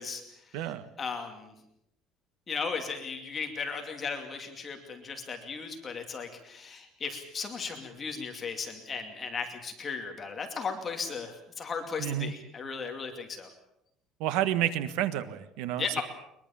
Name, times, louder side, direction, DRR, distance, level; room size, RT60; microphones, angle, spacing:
voice 1, 0.0-1.5 2.5-13.5 15.8-16.0, left 5 dB, 20° left, 4 dB, 2.5 m, -36 dB
voice 2, 0.5-0.8 12.0-12.3 14.2-15.8, right 12 dB, 75° right, 13 dB, 1.4 m, -30 dB
22.5 x 22.0 x 7.2 m, 0.79 s
cardioid pair, 175°, 0 cm